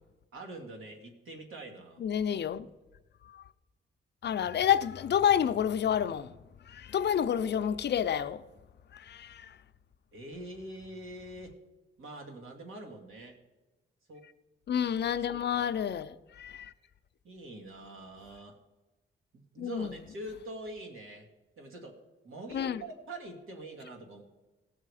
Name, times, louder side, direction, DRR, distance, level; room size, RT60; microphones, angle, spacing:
voice 1, 0.3-2.0 10.1-11.5 12.0-13.4 14.1-14.2 15.5-16.0 17.2-18.6 19.3-21.3 21.6-22.0 22.2-24.2, right 1 dB, 80° right, 2.2 m, -44 dB
voice 2, 2.0-2.7 3.3-3.4 4.2-6.3 6.7-8.4 8.9-9.6 14.7-16.7 19.6-20.0 22.5-22.8, left 9 dB, 55° left, 0.5 m, -29 dB
17.0 x 6.4 x 4.9 m
wide cardioid pair, 160°, 21 cm